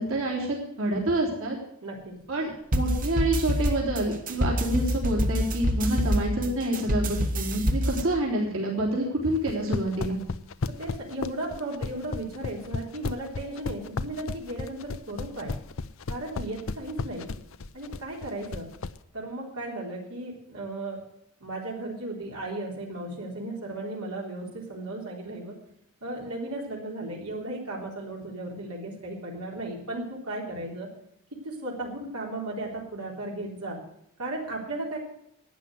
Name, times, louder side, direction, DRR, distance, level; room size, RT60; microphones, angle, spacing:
voice 1, 0.0-1.6 2.3-10.2, right 1 dB, 65° right, -2 dB, 3.6 m, -27 dB
voice 2, 1.8-2.1 10.7-15.5 16.1-17.3 17.7-18.7 19.1-21.0 21.4-25.6 26.0-30.9 31.3-33.8 34.2-35.0, right 1 dB, 85° right, -2 dB, 3.7 m, -35 dB
sound 1, 2.7-8.0, equal, 40° right, 1.3 m, -27 dB
sound 2, 9.4-19.0, left 3 dB, 65° left, 0.6 m, -33 dB
12.0 x 9.6 x 7.8 m, 0.74 s
head